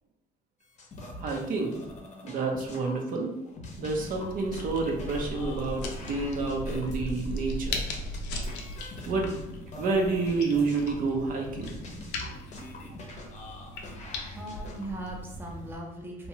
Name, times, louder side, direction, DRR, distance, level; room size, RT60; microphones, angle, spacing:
sound 1, 0.6-3.0 3.2-8.2 8.4-14.8, left 2 dB, 45° left, 0.7 m, -45 dB
voice 1, 1.2-1.7 2.2-3.3 3.8-7.8 9.1-11.7, right 3 dB, 55° right, 1 dB, 0.6 m, -29 dB
sound 2, 3.7-15.8, left 1 dB, 90° left, 0.5 m, -38 dB
voice 2, 14.2-16.3, right 1 dB, 10° right, -1 dB, 0.6 m, -39 dB
2.7 x 2.2 x 2.8 m, 0.88 s
cardioid pair, 110°, 17 cm